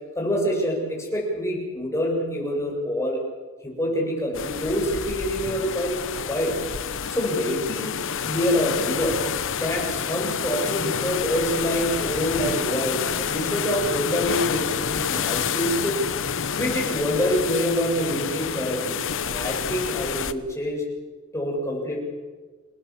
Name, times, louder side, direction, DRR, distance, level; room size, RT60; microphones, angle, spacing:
voice 1, 0.1-3.2 3.6-6.0 6.3-6.6 7.1-9.2 9.6-16.0 16.6-20.9 21.3-22.0, equal, 15° left, -1 dB, 7.0 m, -26 dB
sound 1, 4.3-20.3, left 7 dB, 65° left, 1.0 m, -28 dB
29.0 x 18.0 x 7.3 m, 1.4 s
head